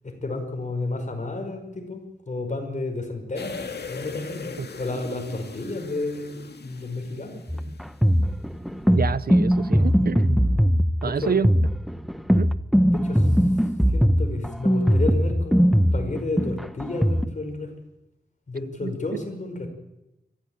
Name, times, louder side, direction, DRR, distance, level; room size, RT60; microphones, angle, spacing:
voice 1, 0.0-3.6 3.9-6.4 6.6-7.4 11.0-11.3 12.8-13.3 13.9-15.7 15.9-17.7 18.5-19.7, left 2 dB, 45° left, 4 dB, 5.3 m, -31 dB
sound 1, 3.4-8.2 8.5-8.6, left 4 dB, 70° left, 2.2 m, -39 dB
sound 2, 7.5-17.2, equal, ahead, 1.0 m, -20 dB
voice 2, 8.9-10.4 11.0-11.5 12.3-12.5 18.8-19.2, right 6 dB, 60° right, 17 dB, 0.7 m, -27 dB
23.5 x 15.5 x 9.1 m, 0.92 s
wide cardioid pair, 105°, 17 cm